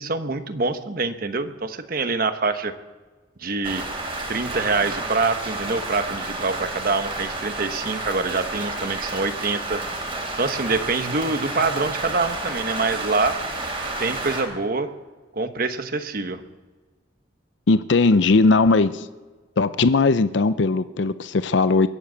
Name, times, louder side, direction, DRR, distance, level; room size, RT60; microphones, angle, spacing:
voice 1, 0.0-2.7 3.4-3.8 4.3-9.8 10.4-13.4 14.0-14.9 15.3-16.4, right 3 dB, 50° right, 9 dB, 1.0 m, -25 dB
Rain, 3.6-14.4, right 2 dB, 30° right, 3.2 m, -30 dB
voice 2, 17.7-19.1 19.6-21.9, left 3 dB, 70° left, 13 dB, 0.5 m, -18 dB
22.5 x 7.8 x 8.3 m, 1.3 s
head